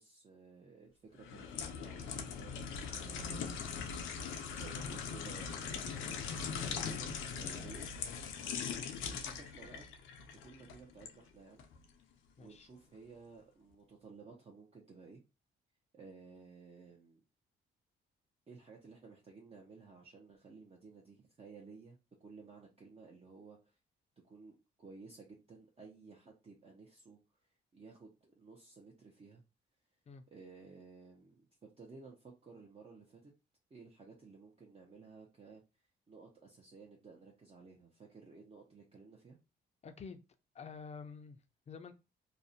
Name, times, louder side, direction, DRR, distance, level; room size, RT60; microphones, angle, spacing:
voice 1, 0.0-3.6 4.5-7.9 9.0-11.7 12.4-15.2 15.9-17.2 18.5-23.7 24.2-27.2 27.7-29.4 30.3-33.3 33.7-35.6 36.1-39.4, right 4 dB, 30° right, 0.6 m, -55 dB
sound 1, 1.2-11.1 11.6-11.8, left 6 dB, 90° left, 0.5 m, -41 dB
voice 2, 8.6-9.0 12.4-12.7 30.1-30.2 39.8-40.2 40.5-41.9, left 5 dB, 35° left, 0.4 m, -49 dB
2.5 x 2.1 x 2.6 m
cardioid pair, 90°, 20 cm